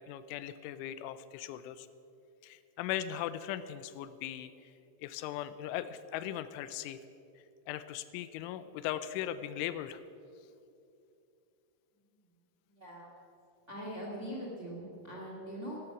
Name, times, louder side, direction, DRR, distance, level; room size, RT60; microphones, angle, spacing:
voice 1, 0.0-1.9 2.4-4.7 5.0-7.0 7.7-10.0, left 11 dB, 85° left, 13 dB, 3.0 m, -39 dB
voice 2, 12.7-13.1 13.7-15.8, equal, 35° right, -3 dB, 1.1 m, -42 dB
15.5 x 13.0 x 5.9 m, 2.6 s
omnidirectional pair, 5.5 m